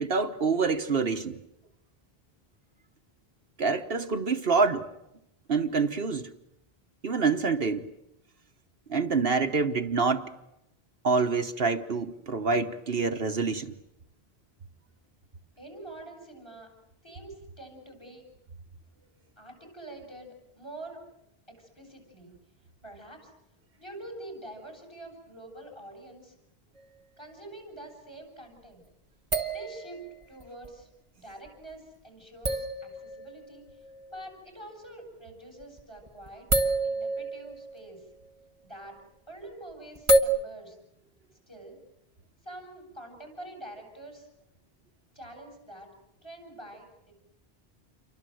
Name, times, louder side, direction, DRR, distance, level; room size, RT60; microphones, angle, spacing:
voice 1, 0.0-1.4 3.6-4.9 5.5-6.3 7.0-7.9 8.9-10.3 11.0-13.7, right 4 dB, 65° right, 1.4 m, -26 dB
voice 2, 15.6-16.7 17.0-18.2 19.4-21.0 21.5-22.3 22.8-23.3 23.8-26.4 27.2-28.8 29.5-33.8 34.1-36.5 36.8-38.1 38.6-39.0 39.3-40.8 41.5-41.8 42.4-44.3 45.1-45.9 46.2-47.1, right 1 dB, 25° left, 8.0 m, -46 dB
sound 1, 26.8-26.9 29.3-30.7 31.5-31.6 32.4-34.3 35.6-35.8 36.1-38.3 40.0-40.2, right 1 dB, 30° right, 1.4 m, -28 dB
28.5 x 24.5 x 7.8 m
omnidirectional pair, 1.1 m